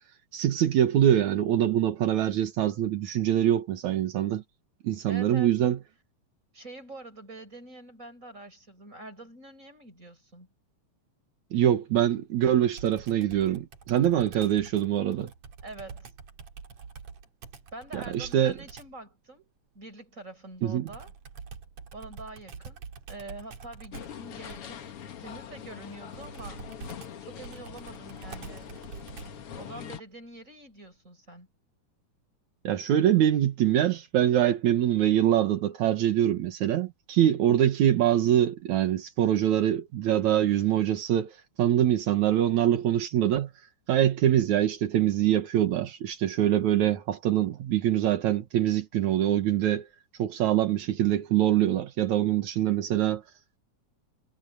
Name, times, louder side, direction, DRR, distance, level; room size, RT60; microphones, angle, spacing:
voice 1, 0.3-4.4 4.8-5.8 11.5-15.3 17.9-18.5 20.6-20.9 32.6-43.5 43.9-49.9 50.2-53.2, right 11 dB, 80° right, 2.8 m, -24 dB
voice 2, 5.1-5.6 6.5-10.5 15.6-16.1 17.7-21.1 21.9-24.9 25.2-26.7 27.2-28.8 29.6-31.5, right 2 dB, 25° right, 7.3 m, -45 dB
Computer keyboard, 12.8-19.0 20.9-29.5, right 6 dB, 65° right, 3.7 m, -46 dB
sound 1, 23.9-30.0, left 8 dB, 55° left, 2.1 m, -43 dB
omnidirectional pair, 3.3 m